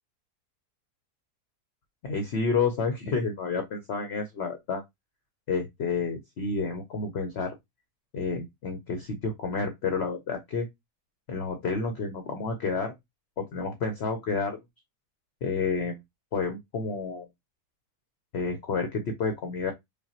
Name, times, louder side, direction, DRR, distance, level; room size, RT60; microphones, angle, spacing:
voice 1, 2.0-4.8 5.5-7.5 8.1-10.7 11.3-12.9 13.4-14.6 15.4-16.0 16.3-17.3 18.3-19.7, left 4 dB, 55° left, 0.7 m, -30 dB
5.1 x 2.3 x 2.8 m
omnidirectional pair, 1.7 m